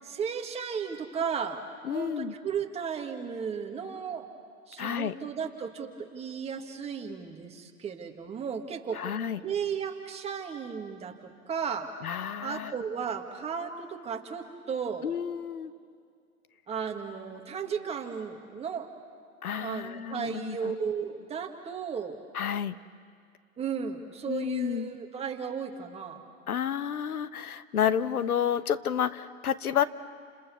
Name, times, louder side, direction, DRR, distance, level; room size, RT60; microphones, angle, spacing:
voice 1, 0.0-1.6 1.9-4.3 4.7-9.0 9.4-11.9 12.4-15.1 16.7-18.9 19.6-22.2 23.6-26.2, right 6 dB, 15° right, 3 dB, 1.8 m, -35 dB
voice 2, 1.8-2.3 4.8-5.1 9.0-9.4 12.0-12.7 15.0-15.7 19.4-20.7 22.3-22.7 24.3-24.9 26.5-29.8, left 9 dB, 85° left, 14 dB, 1.1 m, -30 dB
29.5 x 27.5 x 7.0 m, 2.2 s
hypercardioid pair, 135°, 43 cm